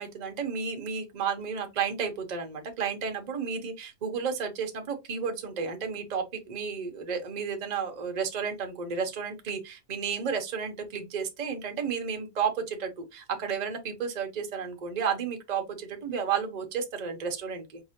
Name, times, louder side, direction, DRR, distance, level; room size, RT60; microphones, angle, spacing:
voice 1, 0.0-17.8, right 6 dB, 35° right, 0.7 m, -32 dB
4.6 x 2.8 x 2.8 m
omnidirectional pair, 1.7 m